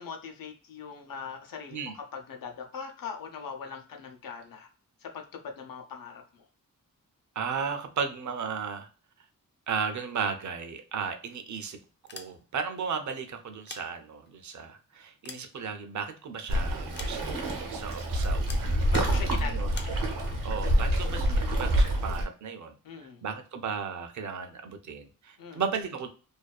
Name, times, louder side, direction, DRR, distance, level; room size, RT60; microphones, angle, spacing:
voice 1, 0.0-4.7 5.0-6.4 18.9-20.4 22.8-23.2 25.4-25.6, left 6 dB, 90° left, 4 dB, 0.6 m, -41 dB
voice 2, 7.4-8.9 9.7-11.8 12.1-18.8 19.4-19.7 20.4-22.8 23.2-26.1, right 6 dB, 60° right, 7 dB, 0.5 m, -35 dB
sound 1, 11.9-12.7 13.4-14.4 14.9-16.2 16.9-17.6 18.5-18.7 19.7-20.0, left 4 dB, 35° left, 0.4 m, -46 dB
Waves surf, 16.5-22.2, right 1 dB, 85° right, 0.9 m, -27 dB
2.6 x 2.3 x 2.2 m, 0.38 s
wide cardioid pair, 115°, 33 cm